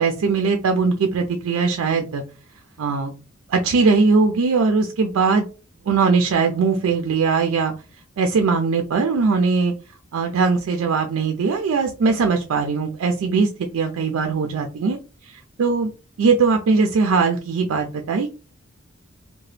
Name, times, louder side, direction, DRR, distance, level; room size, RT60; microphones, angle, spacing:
voice 1, 0.0-2.2 2.8-3.1 3.5-5.4 5.9-7.7 8.2-9.7 10.1-15.0 15.2-15.9 16.2-18.3, right 4 dB, 90° right, 5 dB, 0.4 m, -20 dB
2.8 x 2.1 x 3.1 m, 0.34 s
head